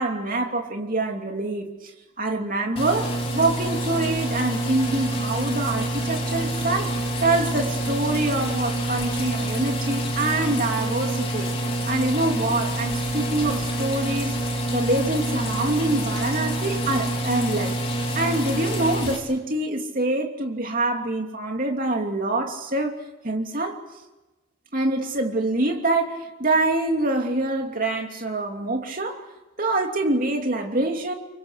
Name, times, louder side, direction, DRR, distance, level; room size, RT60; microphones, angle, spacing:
voice 1, 0.0-1.7 2.2-6.9 7.2-11.5 11.8-14.3 14.7-17.7 18.1-23.0 23.2-23.8 24.7-29.2 29.6-31.1, right 2 dB, 45° right, 3 dB, 2.9 m, -25 dB
sound 1, 2.8-19.2, right 1 dB, 30° left, 4.1 m, -27 dB
28.5 x 24.0 x 6.7 m, 1.1 s
head